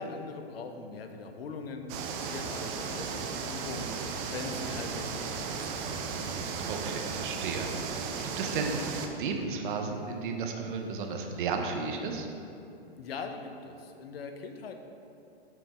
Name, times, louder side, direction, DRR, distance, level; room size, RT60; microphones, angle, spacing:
voice 1, 0.0-1.9 2.2-5.7 13.0-14.7, left 4 dB, 75° left, 6 dB, 0.7 m, -41 dB
sound 1, 1.9-9.1, right 5 dB, 30° right, 0.5 m, -35 dB
sound 2, 3.8-7.9, right 2 dB, 75° right, 1.3 m, -46 dB
voice 2, 6.7-8.8 9.1-12.3, right 4 dB, 55° right, 4 dB, 0.8 m, -34 dB
5.8 x 5.2 x 3.6 m, 2.7 s
hypercardioid pair, 120°, 30 cm